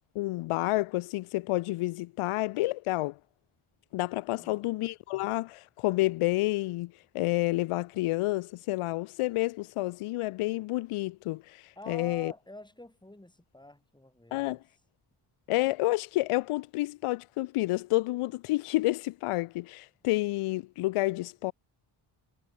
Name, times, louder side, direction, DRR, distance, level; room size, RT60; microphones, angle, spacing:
voice 1, 0.1-3.2 3.9-12.3 14.3-14.6 15.5-21.5, left 19 dB, 85° left, 0.6 m, -29 dB
voice 2, 4.3-4.7 11.7-14.6, left 1 dB, 10° left, 6.7 m, -48 dB
cardioid pair, 105°, 50 cm